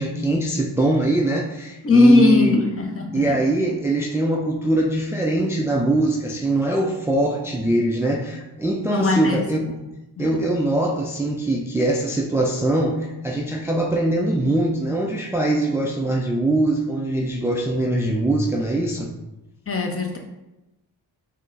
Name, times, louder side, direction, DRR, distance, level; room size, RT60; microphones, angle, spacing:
voice 1, 0.0-2.6 3.1-9.7 10.2-19.1, right 1 dB, 5° right, -1 dB, 0.4 m, -22 dB
voice 2, 1.8-3.4 8.9-9.8 10.2-10.4 19.7-20.2, left 2 dB, 30° left, 2 dB, 0.7 m, -19 dB
3.7 x 2.1 x 3.9 m, 0.97 s
supercardioid pair, 40°, 45 cm